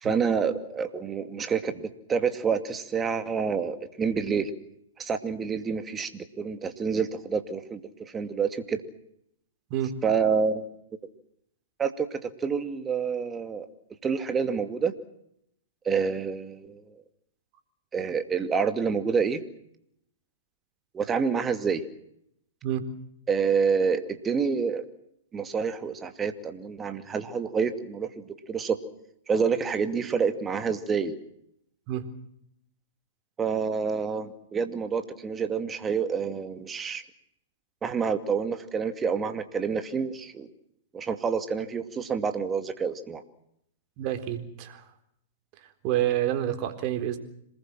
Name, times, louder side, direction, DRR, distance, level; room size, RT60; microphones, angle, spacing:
voice 1, 0.0-4.5 5.0-8.8 10.0-10.6 11.8-13.7 14.0-14.9 15.8-17.0 17.9-19.4 20.9-21.8 23.3-24.9 25.3-28.8 29.3-31.2 33.4-37.0 37.8-40.5 40.9-43.2, right 6 dB, 20° right, 9 dB, 2.4 m, -28 dB
voice 2, 44.0-44.8 45.8-47.2, right 12 dB, 45° right, 8 dB, 3.9 m, -28 dB
27.0 x 20.0 x 7.7 m, 0.75 s
hypercardioid pair, 115°, 0 cm